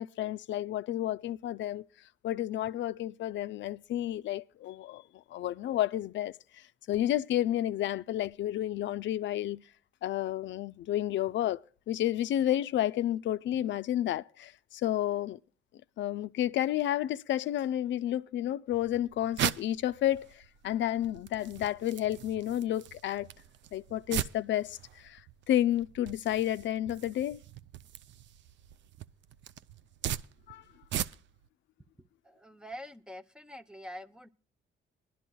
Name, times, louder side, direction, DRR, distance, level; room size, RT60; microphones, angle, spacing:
voice 1, 0.0-1.8 2.2-5.0 5.3-6.3 6.9-9.6 10.0-11.6 11.9-15.4 16.0-23.3 23.7-27.4 30.5-30.6, left 12 dB, 70° left, 0.4 m, -31 dB
sound 1, 18.7-31.5, right 11 dB, 65° right, 0.5 m, -40 dB
voice 2, 32.2-34.3, equal, 5° right, 0.7 m, -45 dB
21.0 x 11.5 x 2.3 m
cardioid pair, 90°, 20 cm